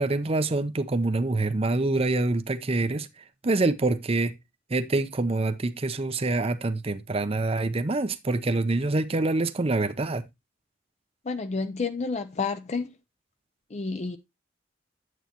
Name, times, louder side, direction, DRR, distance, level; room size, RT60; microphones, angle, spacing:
voice 1, 0.0-3.1 3.4-4.3 4.7-10.2, right 2 dB, 30° right, 0.6 m, -26 dB
voice 2, 11.3-12.9 13.7-14.2, left 4 dB, 40° left, 0.5 m, -30 dB
9.3 x 8.0 x 2.9 m
head